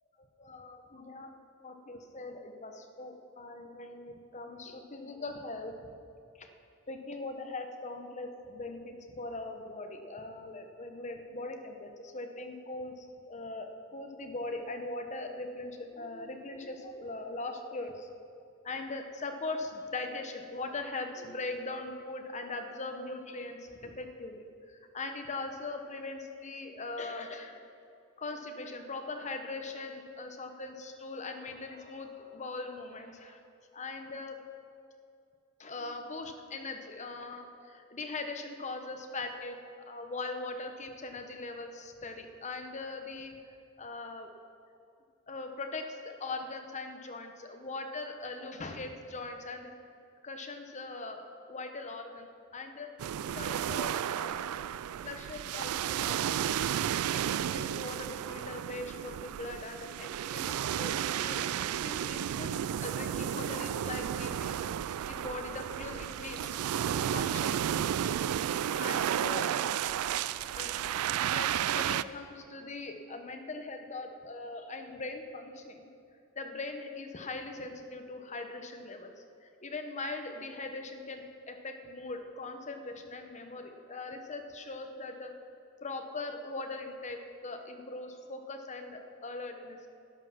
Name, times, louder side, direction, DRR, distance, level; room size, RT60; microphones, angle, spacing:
voice 1, 0.2-1.3 1.6-5.7 6.4-6.5 6.9-18.1 18.6-24.4 24.9-27.6 28.2-33.4 33.7-34.4 35.6-39.6 39.9-44.3 45.3-49.7 50.2-52.3 52.5-52.9 53.3-54.4 55.0-56.5 57.1-61.4 61.8-62.5 62.8-64.6 65.1-66.6 66.9-68.1 68.8-69.5 70.6-70.9 71.3-75.9 76.3-79.1 79.4-85.3 85.8-89.8, left 3 dB, 35° left, 5 dB, 1.0 m, -41 dB
sound 1, 53.0-72.0, right 10 dB, 85° right, 0.3 m, -32 dB
12.5 x 9.6 x 5.9 m, 2.5 s
head